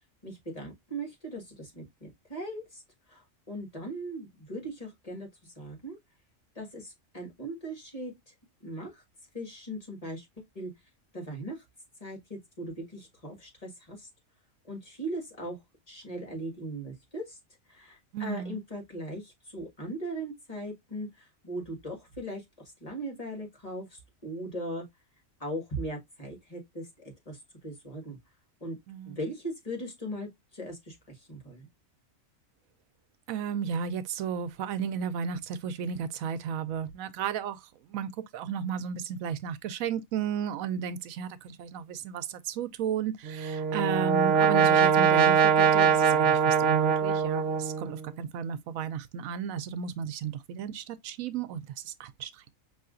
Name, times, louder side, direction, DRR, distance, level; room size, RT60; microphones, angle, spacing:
voice 1, 0.2-2.8 3.1-3.2 3.5-6.0 6.6-8.3 8.6-9.0 9.3-10.3 10.6-10.7 11.1-11.6 12.0-14.1 14.7-15.6 15.9-17.4 17.7-22.4 22.8-24.8 25.4-28.2 28.6-28.8 29.1-31.7, right 1 dB, 30° left, 1.8 m, -39 dB
voice 2, 18.1-18.6 28.9-29.2 33.3-52.4, right 8 dB, 85° right, 1.0 m, -34 dB
Brass instrument, 43.2-48.0, right 7 dB, 60° right, 0.7 m, -23 dB
5.6 x 2.9 x 2.4 m
omnidirectional pair, 1.4 m